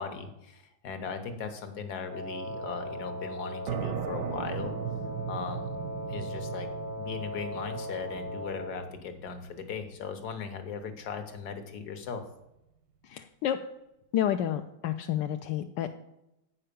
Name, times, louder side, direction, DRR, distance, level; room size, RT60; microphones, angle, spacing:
voice 1, 0.0-4.7 5.3-5.8 6.1-6.7 7.0-12.2, left 5 dB, 65° left, 8 dB, 1.6 m, -38 dB
Wind instrument woodwind instrument, 2.1-8.9, left 1 dB, 20° left, 0.5 m, -38 dB
sound 1, 3.7-11.1, right 9 dB, 90° right, 1.3 m, -38 dB
voice 2, 13.1-13.6 14.1-16.0, left 11 dB, 85° left, 6 dB, 1.2 m, -30 dB
8.6 x 5.6 x 6.8 m, 0.89 s
omnidirectional pair, 1.9 m